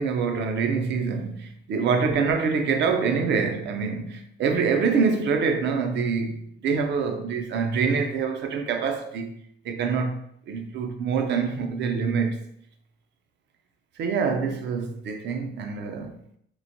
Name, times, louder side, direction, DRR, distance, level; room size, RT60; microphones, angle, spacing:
voice 1, 0.0-9.3 9.6-10.2 10.5-12.4 14.0-16.2, right 5 dB, 60° right, 0.5 m, -25 dB
3.0 x 2.1 x 2.6 m
cardioid pair, 90°, 20 cm